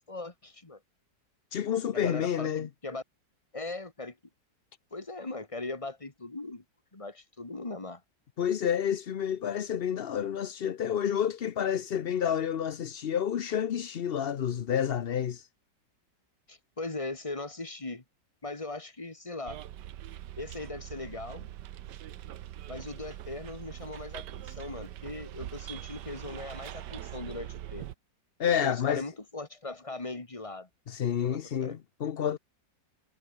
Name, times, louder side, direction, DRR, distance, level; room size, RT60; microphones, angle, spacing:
voice 1, 0.1-0.8 1.9-3.0 3.5-4.2 4.9-6.6 6.9-8.0 16.5-18.0 18.4-19.6 20.4-21.5 22.7-27.9 28.5-30.7 31.2-31.8, left 2 dB, 20° left, 2.1 m, -39 dB
voice 2, 1.5-2.7 8.4-15.5 28.4-29.0 30.9-32.4, left 9 dB, 60° left, 0.6 m, -29 dB
Bus, 19.5-27.9, right 12 dB, 75° right, 1.4 m, -42 dB
omnidirectional pair, 1.9 m